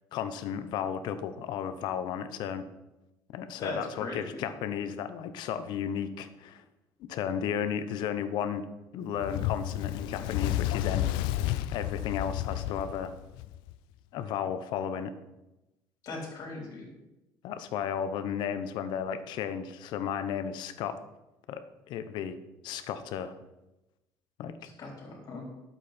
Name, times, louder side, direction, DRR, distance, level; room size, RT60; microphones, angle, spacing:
voice 1, 0.1-2.6 3.3-6.6 7.0-8.7 8.9-11.1 11.4-13.1 14.1-15.1 17.4-21.0 21.5-22.4 22.6-23.3 24.4-24.7, left 8 dB, 70° left, 11 dB, 1.0 m, -34 dB
voice 2, 3.6-4.4 16.0-16.9 24.8-25.5, left 3 dB, 50° left, -1 dB, 4.1 m, -38 dB
Fire, 9.2-13.7, left 13 dB, 90° left, 0.4 m, -31 dB
11.5 x 8.2 x 4.4 m, 0.98 s
cardioid pair, 120°, 8 cm